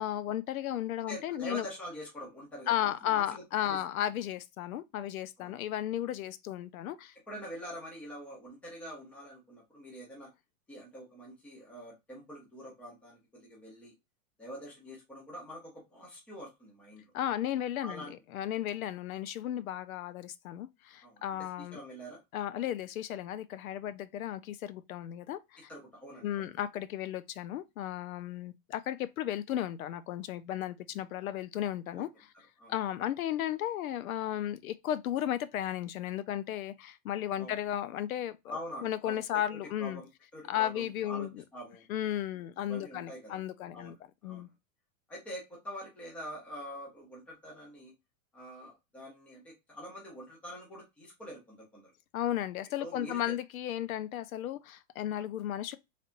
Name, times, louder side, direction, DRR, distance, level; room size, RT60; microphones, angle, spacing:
voice 1, 0.0-1.7 2.7-7.1 17.1-21.8 22.3-25.6 26.2-32.1 32.7-40.0 40.5-41.4 41.9-44.0 44.2-44.5 52.1-55.8, left 12 dB, 80° left, 0.6 m, -34 dB
voice 2, 1.1-3.8 5.4-5.6 7.3-10.3 10.7-13.9 14.4-17.1 17.8-18.1 21.0-21.2 21.6-22.2 25.7-26.5 31.9-32.0 32.6-32.7 37.4-37.6 38.5-39.2 39.8-41.8 42.6-43.4 43.7-43.9 44.2-44.5 45.1-47.9 48.3-51.9 52.8-53.4, equal, 5° left, 0.6 m, -45 dB
4.1 x 3.4 x 2.5 m
supercardioid pair, 180°, 41 cm